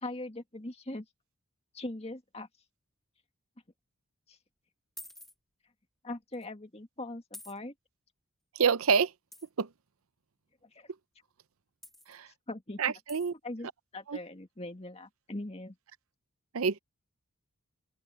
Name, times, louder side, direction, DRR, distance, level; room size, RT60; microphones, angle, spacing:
voice 1, 0.0-1.1 1.7-2.5 4.3-4.4 6.0-7.7 10.7-10.9 12.5-13.0 13.4-15.8, left 2 dB, 30° left, 2.0 m, -41 dB
sound 1, 5.0-5.3 6.3-6.5 7.3-7.6 9.3-9.5 11.8-12.2 13.1-13.3, left 1 dB, ahead, 0.7 m, -48 dB
voice 2, 8.6-9.1 9.6-9.7 12.1-12.3 12.8-13.3 14.1-14.2 16.5-16.8, right 6 dB, 75° right, 0.7 m, -27 dB
open air
head